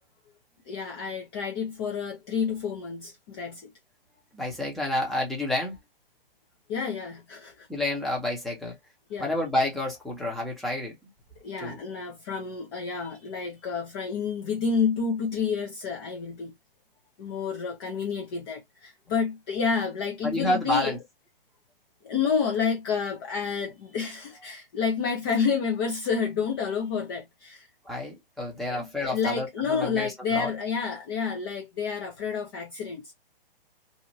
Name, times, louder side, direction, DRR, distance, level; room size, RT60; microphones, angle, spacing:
voice 1, 0.7-3.7 6.7-7.7 9.1-9.3 11.4-16.5 17.2-20.9 22.0-27.7 28.7-33.1, left 6 dB, 25° left, 0.5 m, -29 dB
voice 2, 4.3-5.8 7.7-8.8 9.2-11.0 11.6-11.8 20.2-21.0 27.8-30.5, left 1 dB, ahead, 0.8 m, -29 dB
2.6 x 2.5 x 2.9 m
hypercardioid pair, 140°, 29 cm